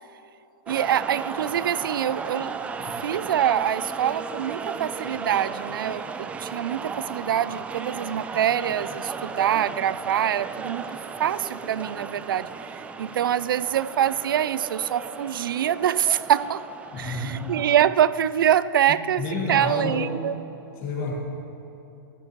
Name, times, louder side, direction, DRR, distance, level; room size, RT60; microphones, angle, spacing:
sound 1, 0.7-17.8, right 5 dB, 10° right, 0.3 m, -35 dB
voice 1, 0.7-2.5 3.0-10.8 11.2-12.5 13.0-16.6 17.0-19.2 19.5-20.4, right 10 dB, 90° right, 17 dB, 0.4 m, -24 dB
voice 2, 16.9-17.6 19.2-20.2 20.8-21.1, left 3 dB, 40° left, -2 dB, 2.3 m, -30 dB
12.5 x 10.5 x 3.1 m, 3.0 s
hypercardioid pair, 145°, 11 cm